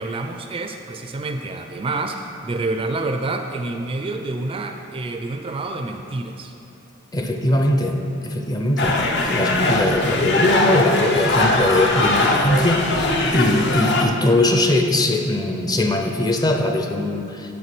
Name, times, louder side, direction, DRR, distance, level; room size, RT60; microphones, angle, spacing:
voice 1, 0.0-6.5, right 2 dB, 30° right, 5 dB, 0.4 m, -28 dB
voice 2, 7.1-8.0 8.2-9.0 9.3-17.6, left 1 dB, 20° left, 4 dB, 0.5 m, -21 dB
sound 1, 8.8-14.0, left 2 dB, 60° left, 0.7 m, -20 dB
9.5 x 3.7 x 5.9 m, 2.7 s
head